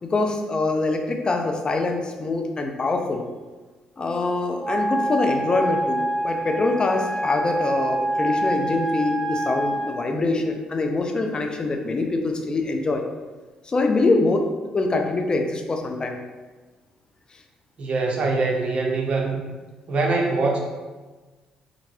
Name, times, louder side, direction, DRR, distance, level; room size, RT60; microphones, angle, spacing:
voice 1, 0.0-3.2 4.0-13.0 13.7-14.5 14.7-16.2, left 3 dB, 35° left, 4 dB, 0.5 m, -24 dB
Wind instrument woodwind instrument, 4.6-10.0, right 1 dB, 5° right, 1.5 m, -26 dB
voice 2, 17.8-19.4 19.9-20.6, right 3 dB, 50° right, 0 dB, 0.8 m, -23 dB
4.3 x 2.5 x 3.2 m, 1.3 s
supercardioid pair, 75°, 3 cm